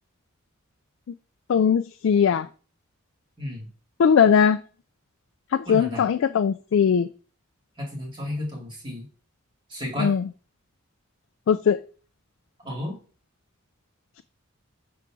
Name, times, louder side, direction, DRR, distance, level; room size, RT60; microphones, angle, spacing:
voice 1, 1.5-2.5 4.0-4.6 5.5-7.1 10.0-10.3 11.5-11.8, left 7 dB, 65° left, 10 dB, 0.3 m, -20 dB
voice 2, 3.4-3.7 5.7-6.1 7.8-9.1 9.7-10.1 12.6-13.0, left 1 dB, 20° right, -2 dB, 2.4 m, -32 dB
5.6 x 3.8 x 6.0 m, 0.38 s
head